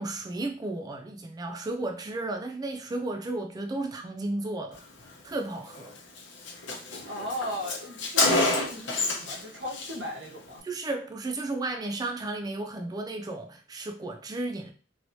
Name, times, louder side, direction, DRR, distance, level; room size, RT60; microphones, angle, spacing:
voice 1, 0.0-4.8 5.2-5.9 10.6-14.7, right 2 dB, 20° right, 0.3 m, -33 dB
Car, 5.7-5.9 6.2-6.3 6.5-9.4 9.7-9.9, left 2 dB, 85° left, 0.8 m, -27 dB
voice 2, 7.0-10.7, left 1 dB, 90° right, 1.4 m, -37 dB
3.1 x 3.0 x 2.7 m
head